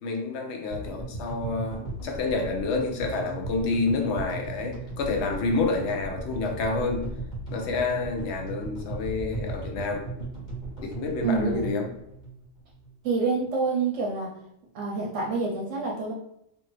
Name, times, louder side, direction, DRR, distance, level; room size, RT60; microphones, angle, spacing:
voice 1, 0.0-7.0 7.5-10.1 10.8-11.9, left 3 dB, 65° left, 2 dB, 0.8 m, -28 dB
sound 1, 0.7-13.0, right 2 dB, 40° left, 1.4 m, -37 dB
voice 2, 11.2-11.8 13.0-14.3 14.7-16.1, right 4 dB, 75° right, -2 dB, 0.9 m, -27 dB
2.6 x 2.5 x 3.1 m, 0.77 s
omnidirectional pair, 1.3 m